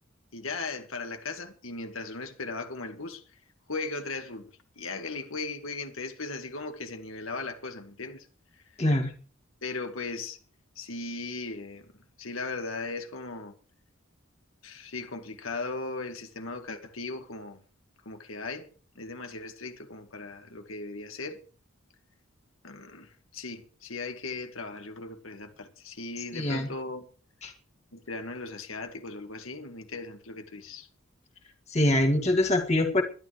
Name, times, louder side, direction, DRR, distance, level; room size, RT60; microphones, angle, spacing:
voice 1, 0.3-3.2 3.7-8.3 9.6-10.4 10.8-11.9 12.2-13.5 14.6-17.6 18.1-18.7 19.0-21.4 22.6-27.1 27.9-30.9, left 3 dB, 75° left, 1.9 m, -37 dB
voice 2, 8.8-9.1 26.3-26.7 27.4-27.5 31.7-33.0, left 1 dB, 30° left, 2.1 m, -24 dB
22.5 x 11.5 x 3.3 m
head